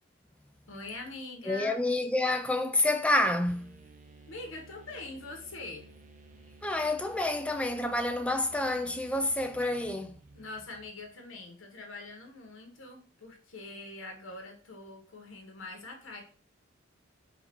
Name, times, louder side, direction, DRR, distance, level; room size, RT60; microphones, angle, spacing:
voice 1, 0.7-1.8 4.3-5.9 10.3-16.2, left 2 dB, 70° left, 1.1 m, -43 dB
voice 2, 1.5-3.7 6.6-10.2, left 1 dB, 5° left, 0.3 m, -28 dB
sound 1, 3.5-11.2, right 3 dB, 40° right, 0.6 m, -54 dB
4.0 x 2.5 x 4.5 m
head